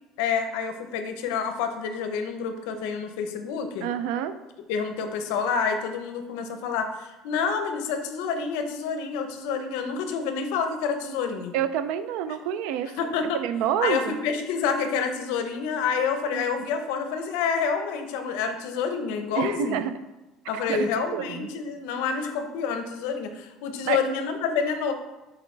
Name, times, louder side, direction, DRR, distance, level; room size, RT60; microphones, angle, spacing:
voice 1, 0.2-3.9 4.7-11.5 13.0-13.4 13.8-19.8 20.5-24.9, left 6 dB, 85° left, 7 dB, 0.7 m, -28 dB
voice 2, 3.8-4.3 11.5-12.9 13.2-14.2 16.3-16.4 19.3-19.9 20.5-21.5 23.9-24.0, right 9 dB, 70° right, 11 dB, 0.4 m, -28 dB
7.1 x 4.2 x 3.3 m, 1.1 s
cardioid pair, 160°, 0 cm